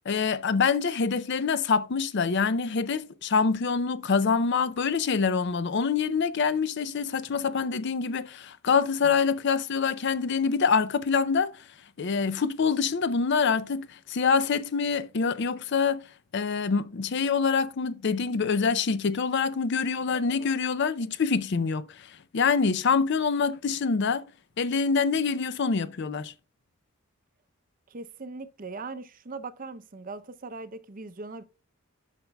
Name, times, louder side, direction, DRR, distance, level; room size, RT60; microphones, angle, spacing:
voice 1, 0.1-11.5 12.0-16.0 16.3-24.2 24.6-26.3, left 5 dB, 55° left, 0.5 m, -25 dB
voice 2, 27.9-31.4, right 3 dB, 40° right, 0.6 m, -40 dB
11.5 x 5.8 x 2.2 m
head